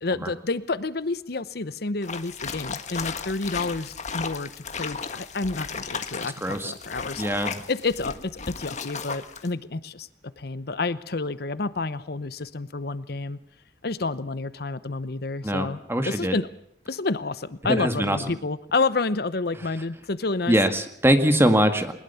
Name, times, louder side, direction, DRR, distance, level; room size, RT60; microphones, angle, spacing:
voice 1, 0.0-13.4 13.8-15.8 16.0-16.5 16.9-20.5, left 3 dB, 60° left, 15 dB, 0.9 m, -29 dB
sound 1, 2.0-9.5, left 5 dB, 40° left, 1.5 m, -35 dB
voice 2, 6.4-6.7 7.2-7.5 15.4-16.4 17.6-18.2 20.5-21.9, equal, 15° right, 7 dB, 1.9 m, -22 dB
21.5 x 20.5 x 7.1 m, 0.71 s
head